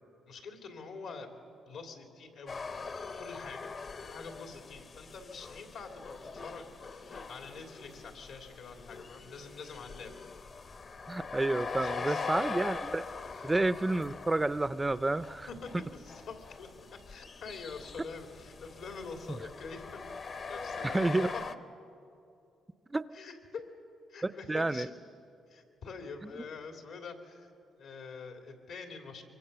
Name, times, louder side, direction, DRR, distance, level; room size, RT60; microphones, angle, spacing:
voice 1, 0.3-2.6 3.2-3.7 4.0-10.1 11.7-12.4 15.5-16.7 17.0-20.0 20.5-21.3 23.1-23.6 24.1-24.9 25.5-27.5 27.8-29.2, left 4 dB, 80° left, 3 dB, 3.1 m, -46 dB
sound 1, 2.5-21.6, left 4 dB, 50° left, 1.1 m, -42 dB
voice 2, 11.1-13.0 13.4-15.5 19.3-19.4 20.8-21.3 22.9-23.1 24.2-24.9 26.2-26.4, right 2 dB, 15° right, 14 dB, 0.5 m, -30 dB
24.5 x 24.0 x 6.9 m, 2.6 s
cardioid pair, 90°, 0 cm